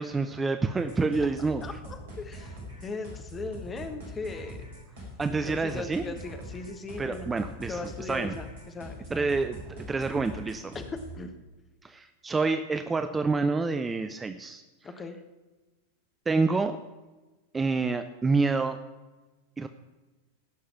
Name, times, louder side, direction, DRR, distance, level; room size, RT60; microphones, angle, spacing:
voice 1, 0.0-1.6 5.2-6.1 7.0-7.8 8.1-8.4 9.1-10.7 11.8-14.6 16.3-16.8 17.5-18.8 19.6-19.7, right 4 dB, 15° right, 9 dB, 0.5 m, -28 dB
sound 1, 0.7-11.2, right 1 dB, 55° right, 4.7 m, -43 dB
voice 2, 1.6-4.6 5.3-7.3 7.7-9.3 10.7-11.3 14.8-15.2, left 3 dB, 20° left, 7 dB, 1.3 m, -39 dB
16.0 x 6.6 x 5.9 m, 1.2 s
figure-of-eight pair, 90°, 0 cm